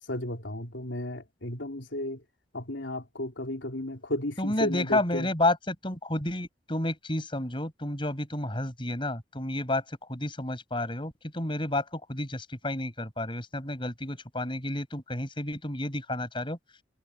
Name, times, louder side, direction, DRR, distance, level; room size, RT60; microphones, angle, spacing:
voice 1, 0.1-2.2 2.5-5.3, left 1 dB, 80° left, 3.7 m, -34 dB
voice 2, 4.4-9.8 10.1-16.6, left 1 dB, 25° left, 6.9 m, -31 dB
head